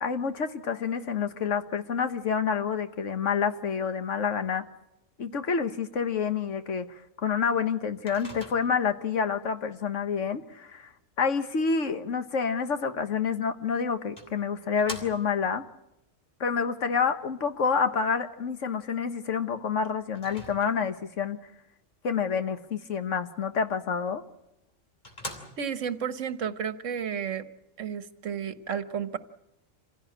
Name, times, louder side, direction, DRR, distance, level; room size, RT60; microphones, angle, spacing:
voice 1, 0.0-4.6 5.2-10.9 11.2-15.6 16.4-21.4 22.0-24.2, left 6 dB, 70° left, 9 dB, 1.6 m, -28 dB
Microwave oven, 8.1-9.0 13.3-13.4 14.2-15.5 20.1-21.0 24.2-24.3 24.7-24.8 25.0-25.9, left 1 dB, 35° left, 3.3 m, -43 dB
voice 2, 25.6-27.5 27.8-29.2, right 7 dB, 70° right, 11 dB, 1.5 m, -32 dB
26.5 x 16.0 x 8.6 m, 0.88 s
omnidirectional pair, 1.3 m